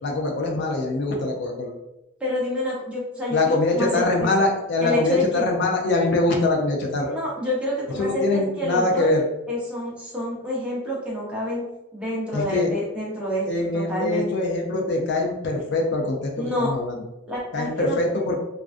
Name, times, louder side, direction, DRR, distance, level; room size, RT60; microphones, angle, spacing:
voice 1, 0.0-1.7 3.3-7.1 8.0-9.2 12.3-12.7 13.5-17.0 17.5-18.4, left 2 dB, 55° left, 1 dB, 0.4 m, -23 dB
voice 2, 2.2-4.3 4.8-5.5 7.0-9.1 9.5-11.6 11.9-13.5 13.7-14.3 16.4-16.7 17.3-18.0, left 1 dB, 5° right, -6 dB, 0.6 m, -28 dB
2.4 x 2.2 x 2.4 m, 0.94 s
head